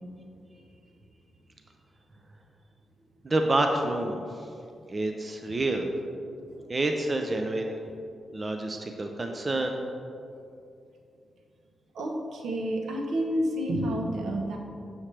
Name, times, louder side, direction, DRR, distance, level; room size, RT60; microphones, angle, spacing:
voice 1, 3.2-4.2 4.9-5.8 6.7-7.8 8.3-9.8, right 2 dB, 30° right, 4 dB, 0.6 m, -28 dB
voice 2, 11.9-14.6, equal, 75° right, 2 dB, 0.9 m, -29 dB
7.4 x 7.1 x 3.3 m, 2.5 s
cardioid pair, 100°, 0 cm